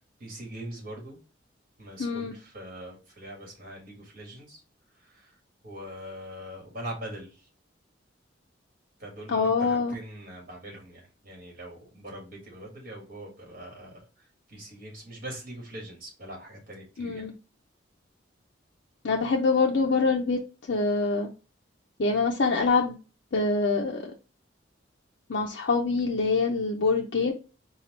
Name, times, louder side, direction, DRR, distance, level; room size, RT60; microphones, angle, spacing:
voice 1, 0.2-1.2 1.8-4.6 5.0-5.4 5.6-7.5 9.0-17.3, right 1 dB, 45° right, -1 dB, 1.7 m, -42 dB
voice 2, 2.0-2.3 9.3-10.0 17.0-17.3 19.0-20.4 20.7-21.3 22.0-23.0 23.3-24.1 25.3-27.3, left 4 dB, 60° left, -1 dB, 0.5 m, -25 dB
4.3 x 2.3 x 4.1 m, 0.34 s
head